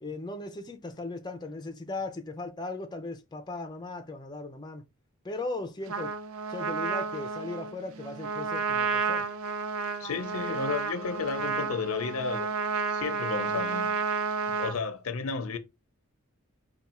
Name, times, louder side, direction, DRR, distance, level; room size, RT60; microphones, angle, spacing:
voice 1, 0.0-4.8 5.2-6.1 6.5-9.3, left 2 dB, 20° left, 0.5 m, -37 dB
Trumpet, 5.9-14.8, right 5 dB, 80° right, 0.5 m, -31 dB
voice 2, 10.0-14.0 14.5-15.6, left 5 dB, 85° left, 0.6 m, -33 dB
3.5 x 2.3 x 4.2 m
head